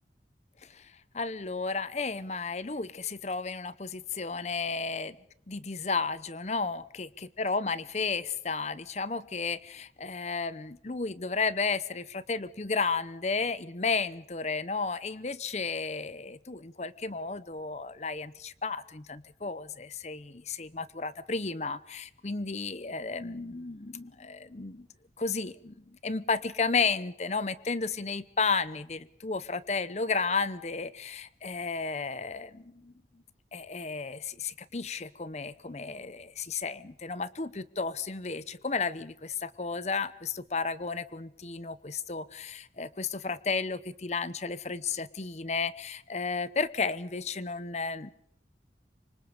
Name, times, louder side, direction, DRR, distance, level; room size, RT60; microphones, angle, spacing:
voice 1, 0.6-5.2 5.5-7.1 7.4-24.9 25.2-32.9 33.5-48.1, left 4 dB, 40° left, 16 dB, 0.8 m, -33 dB
27.0 x 25.0 x 5.1 m, 0.69 s
head